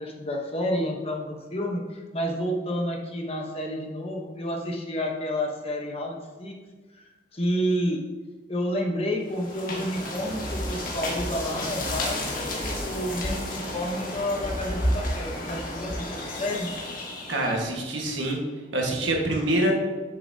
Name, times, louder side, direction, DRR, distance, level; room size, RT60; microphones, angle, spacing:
voice 1, 0.0-6.6 6.9-7.0 7.3-8.0 8.5-16.7, equal, 30° left, 1 dB, 1.0 m, -30 dB
sound 1, 9.3-17.7, left 1 dB, 50° left, 1.5 m, -31 dB
voice 2, 17.3-18.4 18.7-19.7, right 1 dB, 85° right, 0 dB, 1.6 m, -25 dB
8.1 x 6.9 x 2.8 m, 1.3 s
head